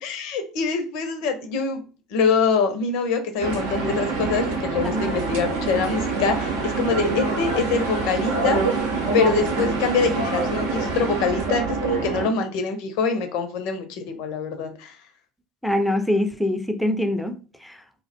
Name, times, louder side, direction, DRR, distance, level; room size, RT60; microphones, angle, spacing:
voice 1, 0.0-1.8 2.1-8.6 9.1-15.0, left 5 dB, 60° left, 0.5 m, -24 dB
sound 1, 3.4-12.3, right 4 dB, 70° right, 0.5 m, -25 dB
voice 2, 4.8-5.2 6.7-6.8 15.6-17.8, left 1 dB, 5° left, 0.4 m, -24 dB
2.3 x 2.1 x 2.7 m
figure-of-eight pair, 65°, 0 cm